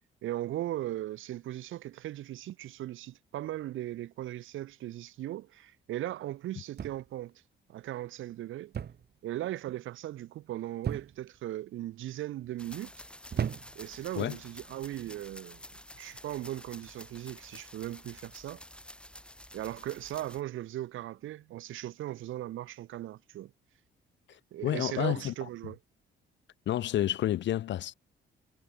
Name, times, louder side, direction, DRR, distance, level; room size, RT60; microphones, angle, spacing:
voice 1, 0.2-7.3 7.7-8.7 9.2-13.0 13.7-15.6 16.0-18.6 19.5-23.5 24.5-25.8, right 14 dB, 80° right, 1.6 m, -38 dB
sound 1, 6.8-7.3 8.7-9.1 9.4-9.8 10.8-11.4 12.1-12.5 13.3-14.0 14.9-15.2, right 8 dB, 55° right, 4.1 m, -36 dB
sound 2, 12.6-20.4, left 1 dB, 5° left, 7.9 m, -50 dB
voice 2, 24.3-25.5 26.7-27.9, left 12 dB, 65° left, 0.7 m, -30 dB
cardioid pair, 90°, 20 cm